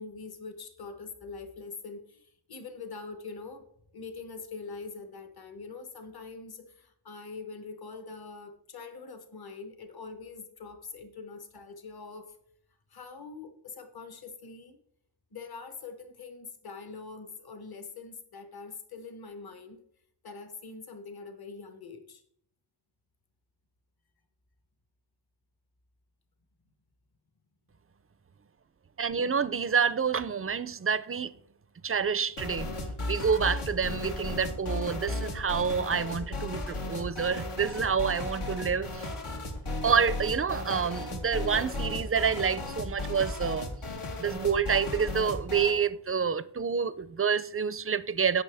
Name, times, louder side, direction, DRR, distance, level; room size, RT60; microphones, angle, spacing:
voice 1, 0.0-3.7 3.9-12.3 12.9-14.8 15.3-19.8 20.2-22.2, left 4 dB, 50° left, 1.2 m, -43 dB
voice 2, 29.0-31.3 31.8-32.7 33.1-39.1 39.8-43.7 44.2-48.4, right 6 dB, 30° right, 0.4 m, -28 dB
sound 1, 32.4-45.8, left 2 dB, 80° left, 1.6 m, -35 dB
16.5 x 6.0 x 3.4 m
wide cardioid pair, 90°, 49 cm